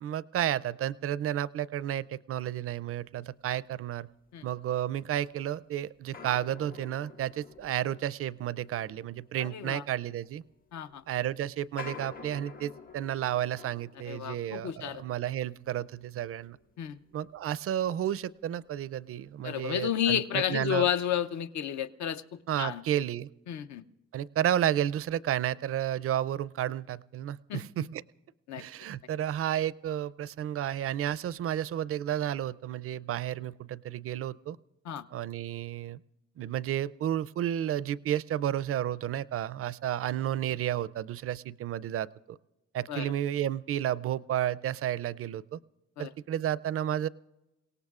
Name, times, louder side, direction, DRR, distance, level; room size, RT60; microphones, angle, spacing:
voice 1, 0.0-4.1 4.4-10.4 11.1-16.6 17.1-20.8 22.5-23.3 24.1-28.0 28.6-34.6 35.1-36.0 36.4-42.4 42.7-45.6 46.0-47.1, right 11 dB, 50° right, 19 dB, 0.4 m, -32 dB
sound 1, 4.8-4.9 6.1-18.1 18.4-18.5 19.1-19.3, left 6 dB, 30° left, 0.7 m, -50 dB
voice 2, 9.4-9.8 10.7-11.0 14.1-15.0 16.8-17.0 19.4-22.2 22.6-22.8 23.5-23.8 27.5-27.8 28.5-28.6 34.8-35.0 42.9-43.1 46.0-46.1, left 10 dB, 65° left, 11 dB, 0.7 m, -31 dB
29.0 x 17.5 x 2.4 m, 0.98 s
cardioid pair, 90°, 30 cm